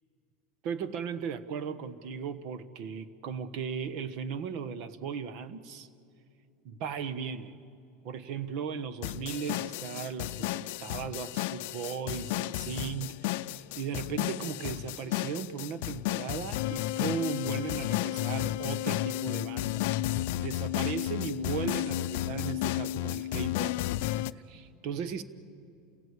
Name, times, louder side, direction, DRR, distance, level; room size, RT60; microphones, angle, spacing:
voice 1, 0.6-5.9 6.6-7.5 8.0-23.8 24.0-25.2, right 6 dB, 55° right, 13 dB, 1.3 m, -37 dB
sound 1, 9.0-24.3, left 15 dB, 70° left, 0.5 m, -32 dB
29.0 x 17.0 x 8.4 m, 2.5 s
supercardioid pair, 130°, 0 cm